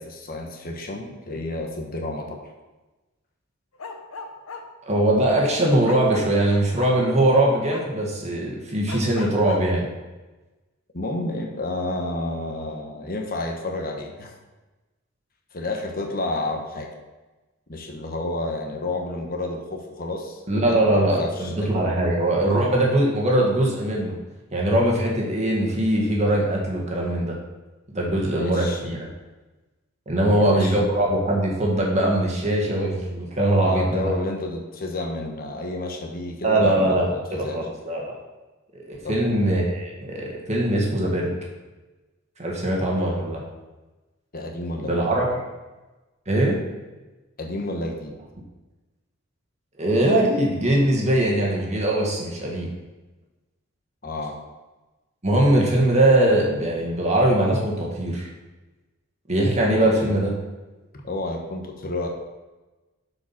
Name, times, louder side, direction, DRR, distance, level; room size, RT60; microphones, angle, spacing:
voice 1, 0.0-2.4 10.9-14.3 15.5-16.9 17.7-21.7 28.1-28.8 30.2-30.8 33.6-37.6 39.0-39.4 44.3-44.9 47.4-48.2 54.0-54.3 59.8-60.2 61.0-62.1, left 2 dB, 45° left, 1 dB, 1.1 m, -30 dB
Bark, 3.8-4.6 5.8-6.9 7.7-7.8 8.9-9.6, left 3 dB, 75° left, 1.0 m, -36 dB
voice 2, 4.9-9.9 20.5-24.2 24.5-27.4 27.9-29.1 30.1-34.1 36.4-38.1 38.7-41.3 42.4-43.4 44.8-45.3 46.3-46.6 49.8-52.7 55.2-58.3 59.3-60.3, right 1 dB, 30° right, -2 dB, 1.8 m, -21 dB
8.1 x 5.0 x 5.8 m, 1.1 s
head